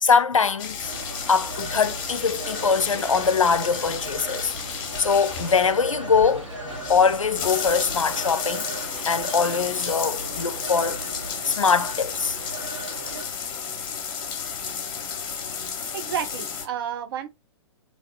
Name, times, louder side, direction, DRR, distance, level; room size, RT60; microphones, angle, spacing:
voice 1, 0.0-0.9 1.3-6.5 6.9-8.6 9.1-11.0 11.4-12.4, left 5 dB, 85° left, 0.4 m, -22 dB
sound 1, 0.6-16.7, left 6 dB, 45° left, 0.9 m, -33 dB
Telephone, 0.8-13.2, right 3 dB, 75° right, 1.4 m, -37 dB
sound 2, 0.9-9.9, left 2 dB, 5° left, 1.0 m, -49 dB
voice 2, 15.9-17.3, right 9 dB, 45° right, 0.7 m, -30 dB
2.9 x 2.7 x 2.9 m
figure-of-eight pair, 120°, 16 cm